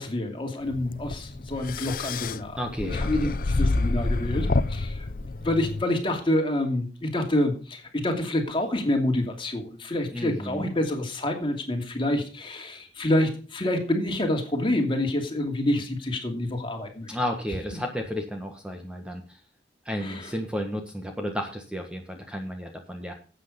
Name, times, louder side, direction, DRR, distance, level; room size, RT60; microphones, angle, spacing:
voice 1, 0.0-17.2 20.0-20.3, left 1 dB, 30° left, 3 dB, 2.6 m, -27 dB
sound 1, 0.7-5.8, left 2 dB, 50° left, 0.7 m, -28 dB
voice 2, 2.6-3.3 10.1-10.7 17.1-19.2 19.8-23.1, equal, 5° right, 3 dB, 1.4 m, -32 dB
12.5 x 8.3 x 5.3 m, 0.37 s
head